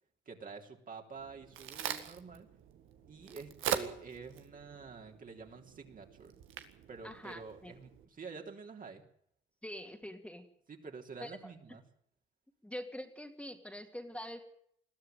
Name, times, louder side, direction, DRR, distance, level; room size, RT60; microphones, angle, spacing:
voice 1, 0.2-2.5 3.1-6.4 6.9-9.1 10.7-11.8, right 5 dB, 45° right, 2 dB, 3.5 m, -48 dB
Crack, 1.1-8.0, right 9 dB, 85° right, 1.9 m, -42 dB
voice 2, 7.0-7.7 9.6-10.5 11.2-11.5 12.6-14.4, equal, 5° left, 4 dB, 2.5 m, -44 dB
21.5 x 13.0 x 9.3 m, 0.69 s
cardioid pair, 90°, 20 cm